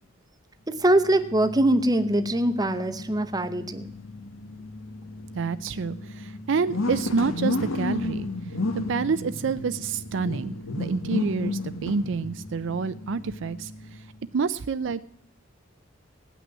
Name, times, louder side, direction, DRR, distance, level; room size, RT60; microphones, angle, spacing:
voice 1, 0.7-3.9, right 1 dB, 20° right, 10 dB, 0.8 m, -23 dB
sound 1, 0.8-14.1, left 2 dB, 75° left, 1.3 m, -33 dB
voice 2, 5.4-8.3 8.9-14.0 14.3-15.0, right 5 dB, 65° right, 13 dB, 0.5 m, -28 dB
17.5 x 6.1 x 9.5 m, 0.74 s
head